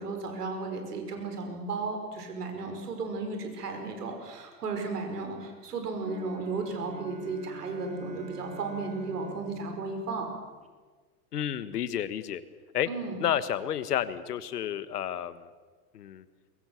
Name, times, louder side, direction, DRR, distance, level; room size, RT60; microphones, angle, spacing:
voice 1, 0.0-10.3 12.9-13.2, right 3 dB, 80° right, 4 dB, 5.4 m, -34 dB
sound 1, 6.0-10.7, right 1 dB, 15° right, 3.2 m, -48 dB
voice 2, 11.3-12.4 12.7-12.9 13.2-15.5 15.9-16.2, left 10 dB, 80° left, 14 dB, 1.5 m, -31 dB
22.5 x 22.5 x 7.3 m, 1.4 s
hypercardioid pair, 95°, 46 cm